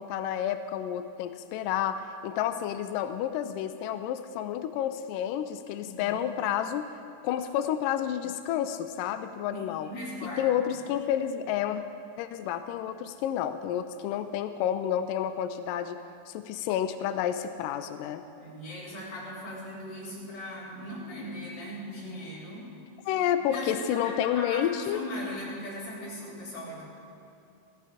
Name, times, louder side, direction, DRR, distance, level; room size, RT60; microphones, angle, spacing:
voice 1, 0.0-6.9 7.2-9.9 10.2-11.8 12.2-18.2 23.1-25.0, left 10 dB, 85° left, 9 dB, 1.9 m, -30 dB
voice 2, 5.8-6.2 9.5-10.8 18.4-22.8 23.4-26.8, left 1 dB, 45° left, -7 dB, 5.2 m, -39 dB
16.0 x 15.5 x 4.9 m, 2.7 s
omnidirectional pair, 4.4 m